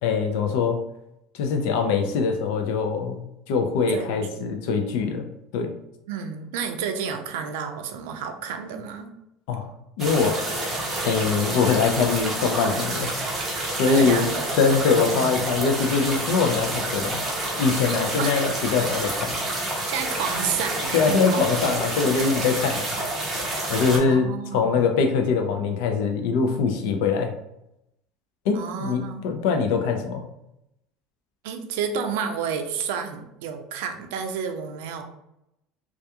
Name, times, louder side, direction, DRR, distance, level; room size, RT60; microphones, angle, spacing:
voice 1, 0.0-0.8 1.3-5.3 5.5-5.7 9.5-9.7 10.0-10.5 11.0-13.1 13.7-14.3 14.6-17.2 17.6-19.4 20.9-22.8 23.7-27.3 28.5-30.2, left 5 dB, 75° left, 5 dB, 0.4 m, -23 dB
voice 2, 3.9-4.5 6.1-9.2 13.9-14.5 14.8-15.4 18.2-18.3 19.9-21.4 23.9-25.0 28.5-29.2 31.4-35.0, right 6 dB, 85° right, 6 dB, 0.4 m, -31 dB
sound 1, 10.0-24.0, right 1 dB, 20° right, 0.6 m, -28 dB
2.3 x 2.2 x 2.8 m, 0.83 s
cardioid pair, 160°, 0 cm